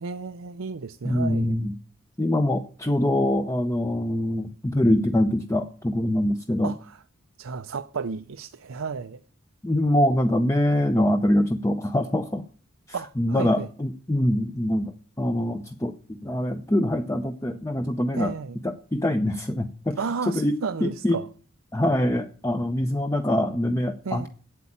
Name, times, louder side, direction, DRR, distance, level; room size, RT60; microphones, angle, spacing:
voice 1, 0.0-1.5 6.6-7.0 7.4-9.2 12.9-13.7 18.1-18.6 20.0-21.3 24.0-24.3, right 5 dB, 80° right, 0.6 m, -33 dB
voice 2, 1.0-1.7 2.2-6.7 9.6-12.4 13.2-14.9 15.2-18.3 18.6-20.0 20.3-21.2 21.7-24.3, left 1 dB, 15° left, 0.6 m, -24 dB
8.5 x 8.2 x 8.6 m
head